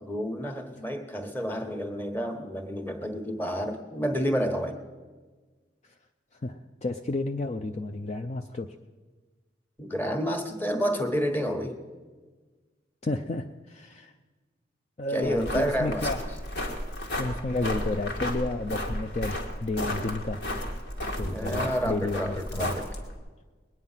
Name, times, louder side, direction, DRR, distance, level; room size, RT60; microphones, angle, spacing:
voice 1, 0.0-4.8 9.8-11.8 15.1-16.1 21.2-22.9, equal, 10° left, 5 dB, 1.2 m, -30 dB
voice 2, 6.4-8.7 13.0-14.1 15.0-16.2 17.2-20.4 21.1-22.8, left 2 dB, 40° left, 6 dB, 0.5 m, -31 dB
sound 1, 15.2-23.2, left 1 dB, 70° left, 1.9 m, -33 dB
21.0 x 9.3 x 5.7 m, 1.4 s
head